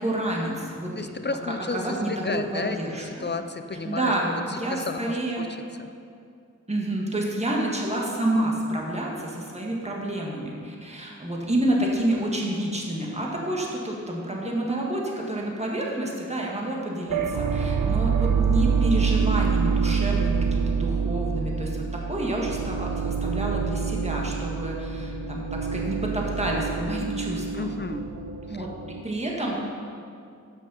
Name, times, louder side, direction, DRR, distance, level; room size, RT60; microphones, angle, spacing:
voice 1, 0.0-1.1 1.7-3.3 3.7-5.5 6.7-27.8 28.5-28.7 29.0-29.6, right 1 dB, 20° right, -2 dB, 1.6 m, -29 dB
voice 2, 1.0-2.8 3.0-4.1 4.5-5.5 27.5-28.0 28.5-28.6, left 3 dB, 35° left, 8 dB, 0.5 m, -32 dB
sound 1, 17.1-29.0, right 6 dB, 90° right, 0.5 m, -26 dB
8.8 x 6.2 x 5.5 m, 2.4 s
wide cardioid pair, 50°, 31 cm